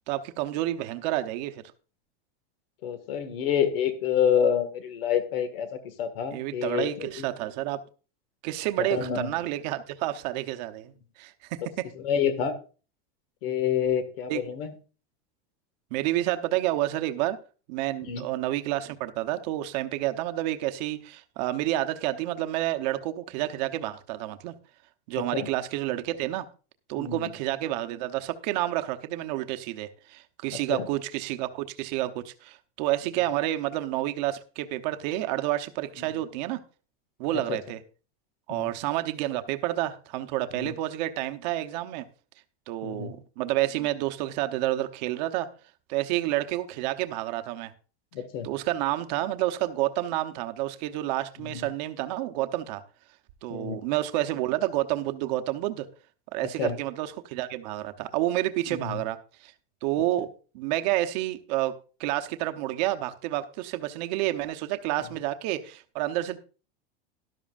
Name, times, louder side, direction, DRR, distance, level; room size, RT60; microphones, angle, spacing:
voice 1, 0.1-1.6 6.3-7.8 8.4-11.6 14.3-14.4 15.9-17.4 17.7-24.5 25.1-26.5 26.9-36.6 37.2-37.8 38.5-42.0 42.7-45.5 45.9-47.7 48.4-52.8 53.4-55.9 56.3-59.2 59.4-59.5 59.8-61.7 62.0-66.4, right 15 dB, 45° right, 0.9 m, -29 dB
voice 2, 2.8-5.7 6.0-7.3 8.8-9.4 12.0-12.6 13.4-14.7 18.1-18.3 25.3-25.5 27.0-27.3 30.7-30.9 36.0-36.2 37.5-37.6 38.5-38.7 40.5-40.8 42.8-43.1 48.1-48.5 51.4-51.7 53.5-53.8 56.6-56.8 58.7-59.0, left 8 dB, 70° left, 1.9 m, -28 dB
12.5 x 12.0 x 2.5 m
supercardioid pair, 175°, 30 cm